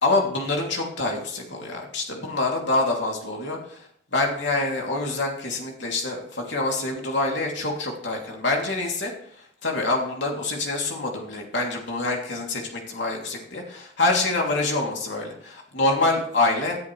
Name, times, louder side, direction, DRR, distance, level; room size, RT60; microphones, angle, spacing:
voice 1, 0.0-3.9 4.1-9.1 9.6-16.8, left 2 dB, 70° left, 0 dB, 2.8 m, -26 dB
18.5 x 10.5 x 3.2 m, 0.66 s
head